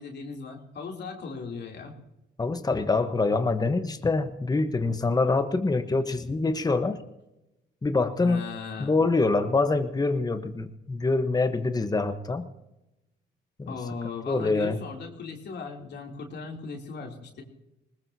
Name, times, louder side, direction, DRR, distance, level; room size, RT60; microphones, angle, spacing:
voice 1, 0.0-2.0 8.2-8.9 13.7-17.4, left 4 dB, 60° left, 1 dB, 3.1 m, -38 dB
voice 2, 2.4-7.0 7.8-8.4 8.8-12.4 13.6-13.7 14.3-14.8, left 3 dB, 20° left, 9 dB, 1.1 m, -25 dB
20.5 x 19.5 x 2.8 m, 0.93 s
cardioid pair, 90°, 20 cm